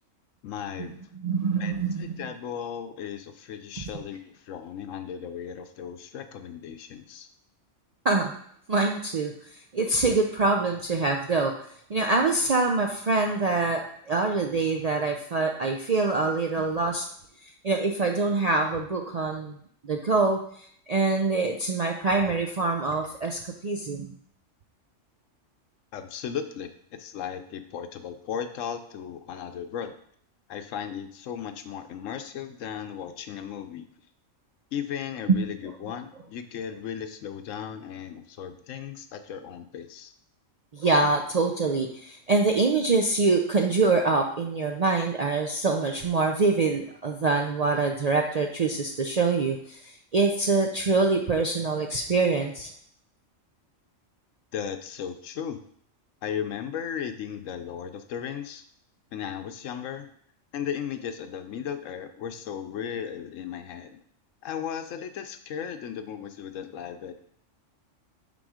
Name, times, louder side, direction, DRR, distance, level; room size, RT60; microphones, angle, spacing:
voice 1, 0.4-1.0 1.6-7.3 25.9-30.0 30.5-33.9 34.7-40.1 54.5-55.6 56.2-58.6 59.1-60.1 60.5-64.0 64.4-67.3, left 8 dB, 80° left, 8 dB, 1.0 m, -36 dB
voice 2, 1.2-2.2 8.0-8.3 8.7-9.3 9.7-11.5 11.9-17.1 17.6-19.6 19.8-24.1 35.3-35.5 40.7-49.8 50.1-52.7, right 3 dB, 55° right, 2 dB, 0.4 m, -25 dB
6.1 x 4.2 x 4.9 m, 0.64 s
omnidirectional pair, 1.3 m